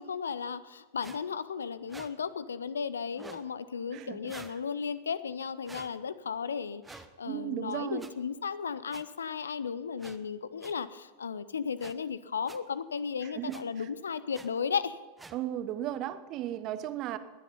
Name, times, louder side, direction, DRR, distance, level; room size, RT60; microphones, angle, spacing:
voice 1, 0.0-15.0, left 6 dB, 70° left, 16 dB, 0.7 m, -35 dB
sound 1, 1.0-1.2 1.9-2.1 3.1-3.4 4.3-4.6 5.6-5.9 6.8-7.1 8.0-8.1 8.9-9.0 10.0-10.2 10.6-10.7 11.8-11.9 12.5-12.6 13.5-13.6 14.3-14.5 15.2-15.4, right 3 dB, 10° right, 1.0 m, -48 dB
voice 2, 3.9-4.3 7.2-8.0 13.2-13.9 15.3-17.2, right 12 dB, 35° right, 13 dB, 1.0 m, -36 dB
19.5 x 10.5 x 5.6 m, 1.4 s
figure-of-eight pair, 90°, 0 cm